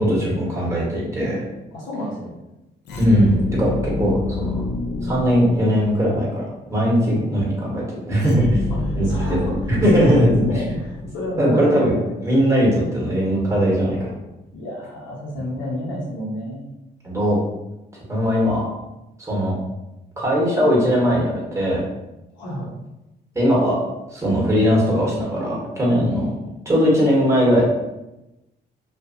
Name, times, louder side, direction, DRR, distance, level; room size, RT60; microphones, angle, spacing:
voice 1, 0.0-1.4 3.0-3.7 4.0-4.6 5.0-8.5 8.9-9.4 9.7-10.3 11.4-11.9 12.2-14.1 17.0-17.4 18.1-18.7 19.2-19.6 20.2-21.8 23.3-23.8 24.1-26.4 26.6-27.6, equal, 15° right, -4 dB, 1.3 m, -19 dB
voice 2, 1.7-2.4 7.1-7.4 8.7-12.4 14.5-16.7 22.3-22.7, left 1 dB, 85° left, -4 dB, 0.9 m, -30 dB
sound 1, 2.8-6.2 8.2-11.5, left 3 dB, 65° left, 0.5 m, -28 dB
2.4 x 2.4 x 2.7 m, 0.95 s
supercardioid pair, 65°, 19 cm